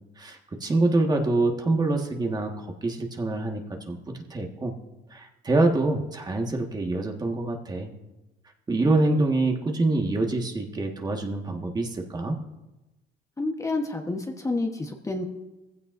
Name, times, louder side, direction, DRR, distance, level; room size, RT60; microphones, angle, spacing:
voice 1, 0.2-4.7 5.1-7.9 8.7-12.4, right 2 dB, 25° right, 2 dB, 1.6 m, -26 dB
voice 2, 13.4-15.2, left 2 dB, 20° left, 3 dB, 1.2 m, -29 dB
19.0 x 15.5 x 2.6 m, 1.0 s
cardioid pair, 110°, 17 cm